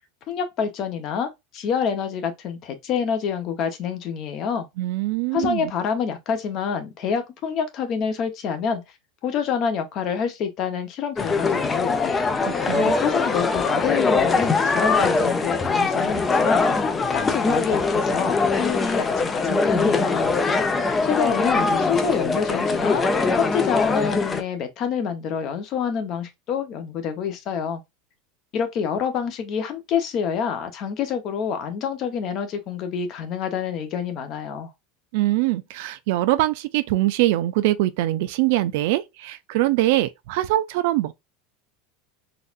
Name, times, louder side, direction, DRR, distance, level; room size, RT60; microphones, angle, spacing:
voice 1, 0.3-4.7 5.3-8.8 9.2-12.2 12.7-16.7 17.1-20.3 21.0-23.0 23.3-27.8 28.5-34.7, left 7 dB, 40° left, 0.9 m, -27 dB
voice 2, 4.8-5.7 12.7-12.9 35.1-41.1, right 16 dB, 65° right, 0.5 m, -23 dB
sound 1, 11.2-24.4, left 4 dB, 15° left, 0.5 m, -22 dB
4.0 x 2.5 x 2.4 m
supercardioid pair, 150°, 0 cm